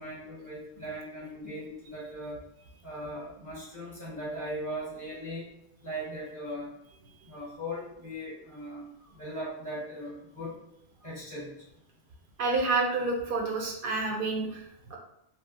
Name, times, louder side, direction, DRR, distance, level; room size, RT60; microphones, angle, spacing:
voice 1, 0.0-2.4 2.8-5.5 5.8-6.7 7.2-10.5 11.0-11.5, equal, 20° right, -7 dB, 0.6 m, -39 dB
voice 2, 12.4-15.0, right 3 dB, 60° right, 1 dB, 0.6 m, -29 dB
2.8 x 2.0 x 2.5 m, 0.82 s
omnidirectional pair, 1.1 m